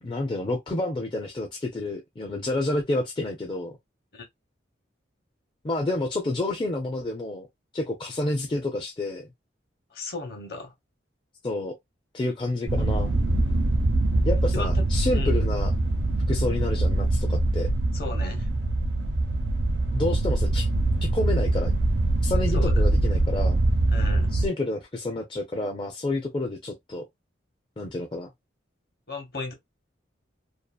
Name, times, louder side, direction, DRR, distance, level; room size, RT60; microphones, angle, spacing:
voice 1, 0.0-3.8 5.6-7.5 7.7-9.3 11.4-11.8 12.1-13.1 14.2-15.7 16.3-17.7 19.9-20.7 21.0-21.7 22.2-23.6 24.3-27.0 27.8-28.3, left 2 dB, 25° left, 0.4 m, -29 dB
voice 2, 9.9-10.7 14.5-14.8 15.1-15.4 17.9-18.5 22.5-22.7 23.9-24.4 29.1-29.5, left 3 dB, 55° left, 0.9 m, -35 dB
sound 1, 12.7-24.5, right 2 dB, 70° right, 0.6 m, -23 dB
2.6 x 2.4 x 2.3 m
head